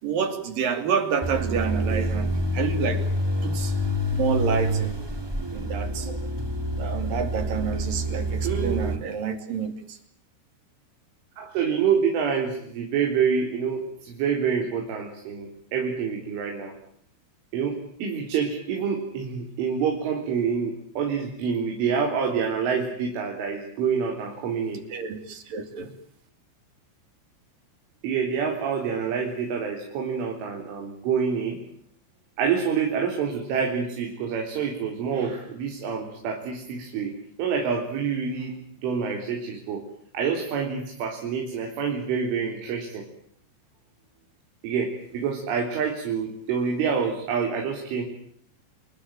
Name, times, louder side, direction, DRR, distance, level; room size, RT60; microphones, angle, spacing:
voice 1, 0.0-2.3 2.5-3.1 3.4-3.7 4.1-5.0 5.5-6.1 6.8-10.0 24.9-25.9, right 6 dB, 50° right, 4.2 m, -28 dB
sound 1, 1.2-9.0, equal, 10° right, 1.7 m, -27 dB
voice 2, 8.4-8.9 11.4-16.7 17.5-24.8 28.0-31.6 32.4-38.5 38.8-39.8 40.1-43.1 44.6-48.0, right 6 dB, 80° right, 6.2 m, -27 dB
30.0 x 21.0 x 9.1 m
omnidirectional pair, 5.6 m